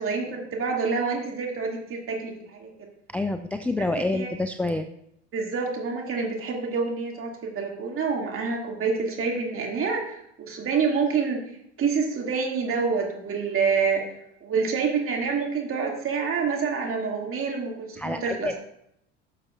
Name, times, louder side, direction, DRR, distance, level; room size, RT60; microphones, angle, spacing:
voice 1, 0.0-2.7 4.0-4.3 5.3-11.4 11.8-14.0 14.4-18.6, right 5 dB, 45° right, 0 dB, 2.3 m, -27 dB
voice 2, 3.1-4.9 18.0-18.6, left 2 dB, 5° left, 7 dB, 0.4 m, -28 dB
12.0 x 6.5 x 2.4 m, 0.77 s
hypercardioid pair, 80°, 31 cm